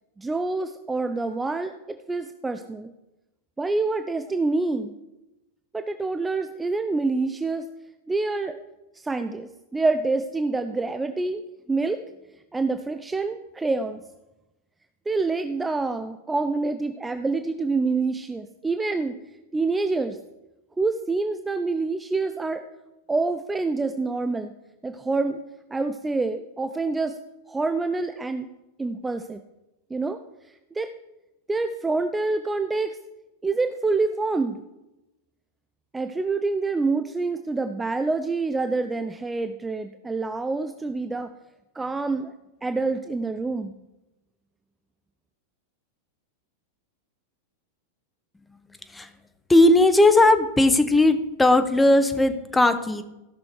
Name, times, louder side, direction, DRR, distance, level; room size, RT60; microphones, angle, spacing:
voice 1, 0.2-2.9 3.6-4.9 5.7-7.7 8.1-8.6 8.9-11.4 11.7-12.0 12.5-14.0 15.1-19.2 19.5-20.2 20.8-22.6 23.1-24.5 24.8-25.4 25.7-27.1 27.5-28.5 28.8-29.4 29.9-30.2 30.7-30.9 31.5-33.0 33.4-34.6 35.9-41.3 41.7-42.3 42.6-43.7, right 3 dB, 10° right, 8 dB, 0.6 m, -26 dB
voice 2, 49.5-53.0, left 2 dB, 10° left, 10 dB, 1.1 m, -18 dB
15.5 x 6.2 x 4.7 m, 0.98 s
figure-of-eight pair, 95°, 0 cm